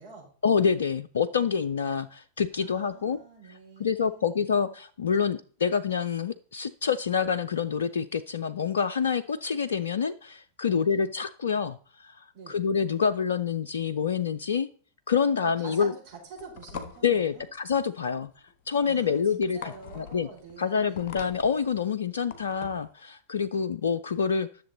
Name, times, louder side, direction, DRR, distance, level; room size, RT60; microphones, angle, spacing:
voice 1, 0.4-3.2 3.8-14.7 15.1-15.9 17.0-18.3 18.7-20.3 20.6-24.5, left 6 dB, 65° left, 12 dB, 0.4 m, -27 dB
voice 2, 2.6-4.3 10.6-11.0 12.3-12.6 15.4-17.5 18.9-21.1, right 4 dB, 45° right, -4 dB, 4.6 m, -47 dB
sound 1, 16.1-22.9, left 6 dB, 45° left, 1.0 m, -44 dB
10.0 x 6.7 x 3.9 m, 0.43 s
figure-of-eight pair, 90°, 0 cm